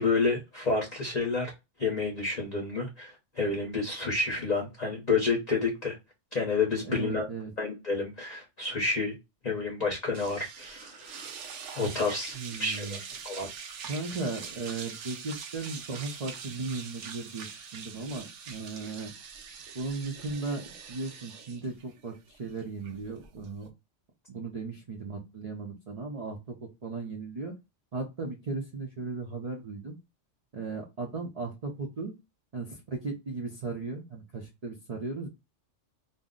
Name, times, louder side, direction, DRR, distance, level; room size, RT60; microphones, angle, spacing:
voice 1, 0.0-1.5 1.8-6.0 6.3-7.3 7.6-9.1 9.4-11.3 11.7-12.3 12.6-13.0 13.2-13.5, left 4 dB, 40° left, 0.8 m, -29 dB
voice 2, 6.8-7.5 12.3-13.0 13.8-19.1 19.7-23.7 24.3-27.5 27.9-30.0 30.5-32.1 32.5-35.3, right 3 dB, 45° right, 0.5 m, -36 dB
sound 1, 10.1-23.7, right 6 dB, 75° right, 0.9 m, -43 dB
2.6 x 2.0 x 3.6 m
omnidirectional pair, 1.3 m